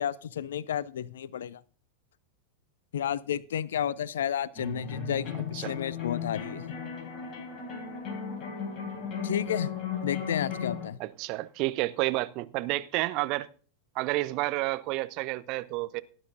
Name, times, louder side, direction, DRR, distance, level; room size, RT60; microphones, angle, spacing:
voice 1, 0.0-1.6 2.9-6.8 9.2-9.7 10.0-11.0, left 9 dB, 60° left, 0.5 m, -32 dB
sound 1, 4.6-10.9, left 6 dB, 35° left, 3.7 m, -36 dB
voice 2, 11.0-13.5 13.9-16.0, right 19 dB, 40° right, 0.6 m, -30 dB
18.0 x 10.0 x 2.6 m
figure-of-eight pair, 90°, 0 cm